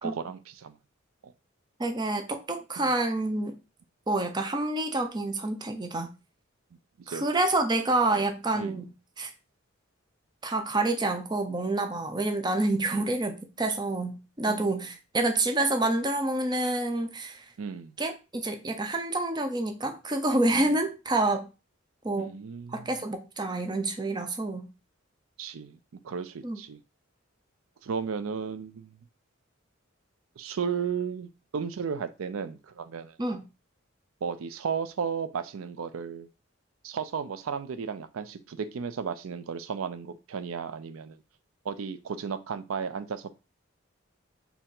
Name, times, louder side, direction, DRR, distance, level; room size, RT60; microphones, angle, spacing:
voice 1, 0.0-0.7 1.2-1.3 2.8-2.9 7.1-7.2 8.1-8.3 8.5-8.8 14.5-14.9 17.6-17.9 20.5-20.6 22.2-22.9 25.4-25.8 26.0-26.8 27.8-29.0 30.4-33.2 34.2-36.3 36.8-41.2 41.6-43.3, right 6 dB, 90° right, 0.4 m, -34 dB
voice 2, 1.8-3.6 4.1-6.1 7.1-9.3 10.4-17.5 18.0-21.5 22.0-22.4 22.7-24.7 26.4-26.6 33.2-33.4, right 2 dB, 20° right, 0.6 m, -28 dB
4.4 x 2.8 x 3.7 m
head